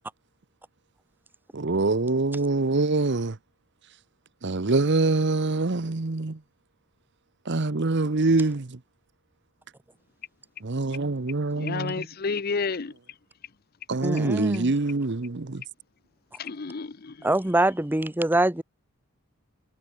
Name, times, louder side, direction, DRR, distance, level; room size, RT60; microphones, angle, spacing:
voice 1, 1.5-3.4 4.4-6.4 7.5-8.8 10.6-12.1 13.9-15.6, right 3 dB, 55° right, 0.9 m, -25 dB
voice 2, 11.6-12.9 16.4-17.1, left 4 dB, 45° left, 0.6 m, -30 dB
voice 3, 14.0-14.7 17.2-18.6, right 1 dB, 10° right, 0.7 m, -24 dB
head